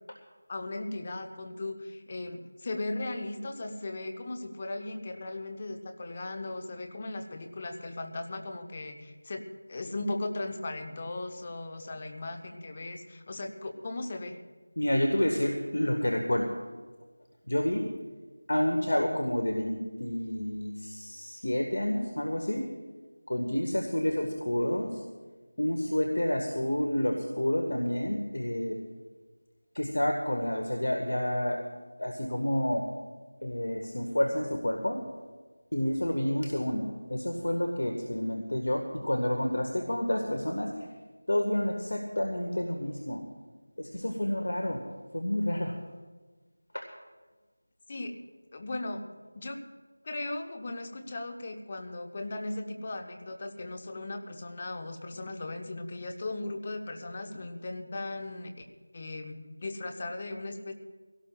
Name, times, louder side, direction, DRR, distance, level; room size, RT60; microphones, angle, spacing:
voice 1, 0.5-14.4 47.9-48.1 48.5-49.1 49.3-49.6 50.0-58.6 58.9-60.7, left 2 dB, 30° left, 5 dB, 1.1 m, -37 dB
voice 2, 14.8-16.5 17.5-17.8 18.5-22.6 23.3-24.9 25.6-28.8 29.7-31.6 32.0-32.8 33.4-35.0 35.7-36.8 37.1-40.7 41.3-43.2 43.8-44.8 45.1-45.7 46.7-46.8, left 1 dB, 65° left, 3 dB, 1.7 m, -29 dB
22.5 x 17.5 x 2.5 m, 1.3 s
figure-of-eight pair, 170°, 0 cm